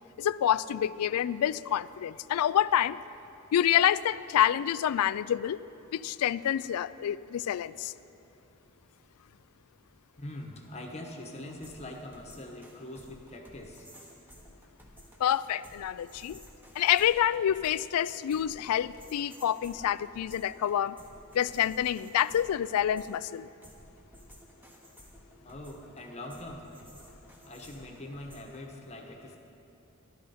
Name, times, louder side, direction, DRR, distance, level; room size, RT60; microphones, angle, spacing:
voice 1, 0.2-3.0 3.5-5.6 5.9-7.9 15.2-16.4 16.8-21.0 21.3-23.5, left 10 dB, 85° left, 18 dB, 0.3 m, -27 dB
voice 2, 10.2-13.9 25.4-26.7 27.4-29.4, left 1 dB, 30° left, 2 dB, 1.1 m, -43 dB
sound 1, 11.4-28.6, equal, 10° right, 1.2 m, -54 dB
15.0 x 12.5 x 4.2 m, 2.8 s
head